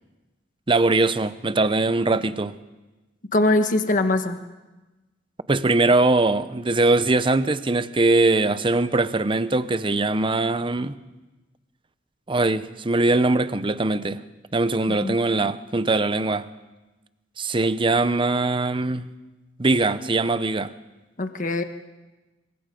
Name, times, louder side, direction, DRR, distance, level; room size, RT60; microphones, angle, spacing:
voice 1, 0.7-2.6 5.5-11.0 12.3-14.2 14.5-16.5 17.4-19.1 19.6-20.7, right 2 dB, 25° right, 0.7 m, -21 dB
voice 2, 3.3-4.4 14.9-15.2 21.2-21.6, left 2 dB, 45° left, 1.4 m, -22 dB
27.5 x 23.5 x 5.2 m
head